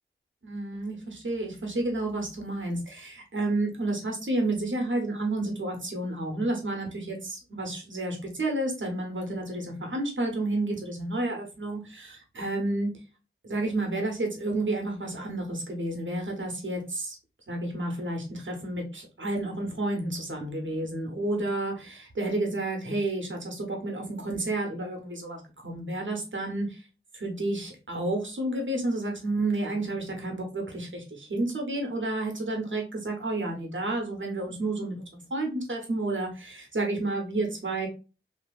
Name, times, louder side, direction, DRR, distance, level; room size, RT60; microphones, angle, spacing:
voice 1, 0.4-12.9 13.4-17.2 17.5-26.8 27.1-37.9, right 2 dB, 65° right, 2 dB, 1.0 m, -31 dB
2.8 x 2.6 x 2.4 m, 0.32 s
wide cardioid pair, 45°, 21 cm